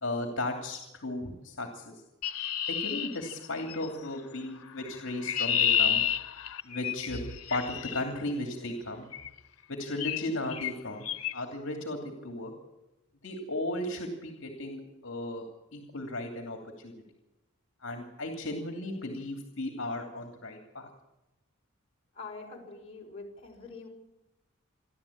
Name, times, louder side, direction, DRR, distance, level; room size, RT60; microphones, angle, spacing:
voice 1, 0.0-1.9 2.7-6.0 6.6-7.2 7.5-9.0 9.7-11.1 11.3-12.5 13.2-15.4 15.7-16.6 16.8-16.9 17.8-20.9, left 1 dB, 60° left, 3 dB, 2.8 m, -35 dB
Chirp tweet, 2.2-3.9 4.9-8.0 9.1-9.4 10.0-10.3 10.5-10.7 11.1-11.3, left 9 dB, 90° left, 0.9 m, -30 dB
voice 2, 22.1-23.9, left 3 dB, 30° left, -1 dB, 5.5 m, -44 dB
28.0 x 11.5 x 8.6 m, 0.99 s
head